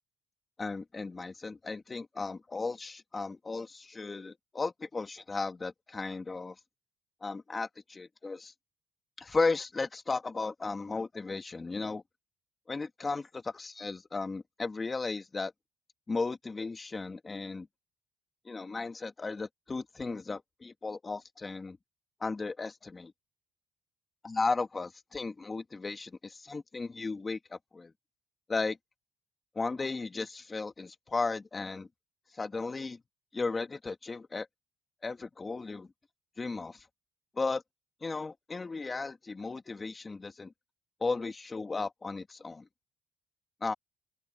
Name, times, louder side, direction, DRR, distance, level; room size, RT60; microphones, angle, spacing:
voice 1, 0.6-6.6 7.2-8.5 9.2-12.0 12.7-15.5 16.1-17.7 18.4-21.8 22.2-23.1 24.2-27.9 28.5-28.8 29.5-31.9 32.3-33.0 33.3-34.5 35.0-35.9 36.4-36.9 37.4-37.6 38.0-40.5 41.0-42.7 43.6-43.7, left 3 dB, 20° left, 2.1 m, -35 dB
open air
cardioid pair, 135°, 0 cm